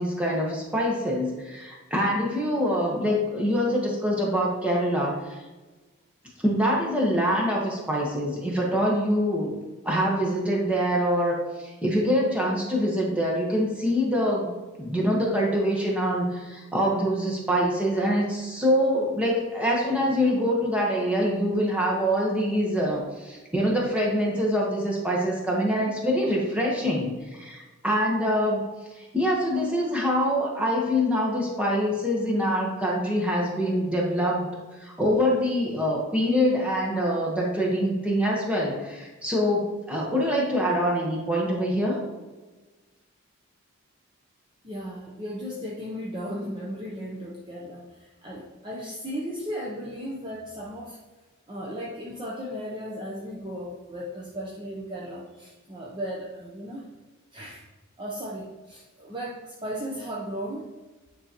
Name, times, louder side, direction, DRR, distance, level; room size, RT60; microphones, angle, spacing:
voice 1, 0.0-5.4 6.4-9.5 9.8-14.5 14.8-28.7 29.0-34.5 34.8-42.0, equal, 5° right, -3 dB, 1.1 m, -25 dB
voice 2, 44.6-51.0 51.5-56.9 57.3-57.7 58.0-60.7, equal, 20° right, -5 dB, 0.7 m, -36 dB
9.7 x 3.9 x 2.9 m, 1.2 s
head